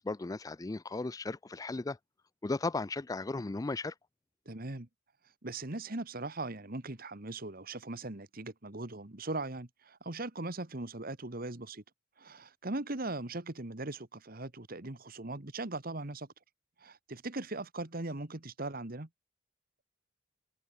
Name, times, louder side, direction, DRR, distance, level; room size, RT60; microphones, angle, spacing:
voice 1, 0.0-2.0 2.4-3.9, left 3 dB, 20° left, 0.4 m, -35 dB
voice 2, 4.5-4.9 5.4-11.8 12.2-16.3 16.8-19.1, right 2 dB, 50° right, 1.8 m, -39 dB
head